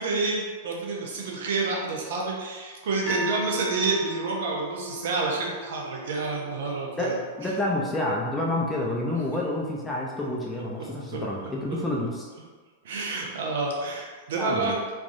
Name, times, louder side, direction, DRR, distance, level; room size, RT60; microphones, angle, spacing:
voice 1, 0.0-7.1 7.4-7.5 11.1-11.2 12.8-14.8, right 3 dB, 70° right, -2 dB, 0.7 m, -29 dB
sound 1, 3.1-9.2, equal, 15° right, 1.1 m, -38 dB
voice 2, 7.0-12.3 14.3-14.7, left 1 dB, 10° left, -4 dB, 0.6 m, -28 dB
3.3 x 2.5 x 2.6 m, 1.4 s
hypercardioid pair, 105°, 0 cm